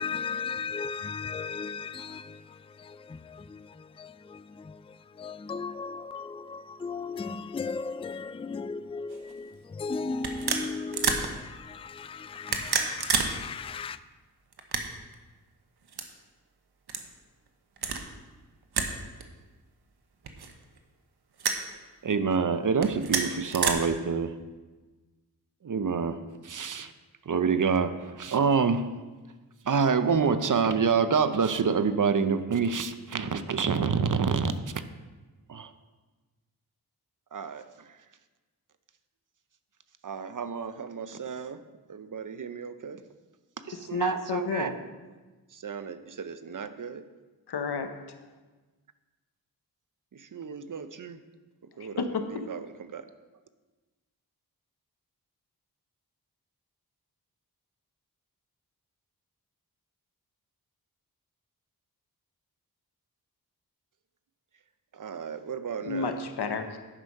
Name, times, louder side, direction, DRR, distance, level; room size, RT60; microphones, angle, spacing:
voice 1, 0.0-14.0, left 4 dB, 15° left, 0.4 m, -36 dB
sound 1, 9.1-9.3 10.2-11.3 12.3-13.3 13.6-13.7 14.5-15.1 15.9-16.0 16.9-17.1 17.8-18.0 18.7-18.9 19.2-19.3 20.2-20.8 21.4-21.6 22.7-23.7, right 5 dB, 80° right, 1.1 m, -28 dB
voice 2, 22.0-24.3 25.6-26.2 26.4-26.9 27.3-28.8 29.7-34.7 35.5-35.7 37.3-37.6 40.0-41.6 41.9-43.0 43.7-44.7 45.6-47.0 50.3-51.2 51.8-52.0 52.5-52.6 52.9-53.1 65.0-66.1, right 5 dB, 55° right, 0.8 m, -28 dB
voice 3, 43.7-44.7 47.5-48.0 52.0-52.5 65.9-66.8, left 4 dB, 80° left, 1.0 m, -31 dB
10.0 x 6.2 x 5.4 m
cardioid pair, 50°, 39 cm